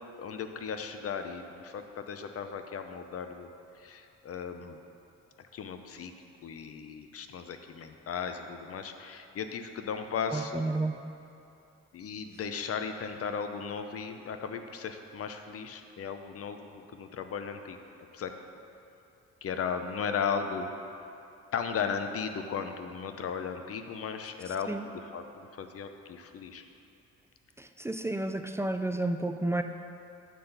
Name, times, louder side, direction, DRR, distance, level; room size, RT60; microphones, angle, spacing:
voice 1, 0.0-3.5 3.8-4.8 5.5-6.1 6.4-10.6 11.9-17.8 18.1-18.3 19.4-20.7 21.5-26.6, left 6 dB, 50° left, 7 dB, 0.7 m, -36 dB
voice 2, 10.3-10.9 24.7-24.8 27.6-29.6, right 2 dB, 10° right, 6 dB, 0.3 m, -31 dB
9.2 x 4.0 x 6.7 m, 2.8 s
cardioid pair, 90°, 30 cm